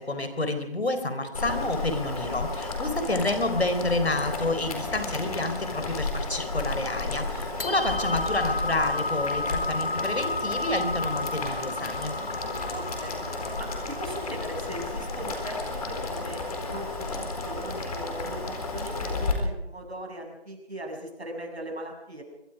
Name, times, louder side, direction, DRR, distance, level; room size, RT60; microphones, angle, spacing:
voice 1, 0.0-12.1, left 2 dB, 80° left, 9 dB, 4.3 m, -29 dB
Boiling, 1.3-19.3, left 3 dB, 35° left, 4.2 m, -33 dB
sound 1, 4.3-5.6 5.9-6.0 6.4-7.0 7.4-15.5, left 2 dB, 60° left, 1.1 m, -34 dB
voice 2, 12.7-13.2 13.6-16.4 16.7-22.2, right 1 dB, 85° right, 3 dB, 6.6 m, -39 dB
23.5 x 23.0 x 5.0 m, 0.88 s
figure-of-eight pair, 165°, 31 cm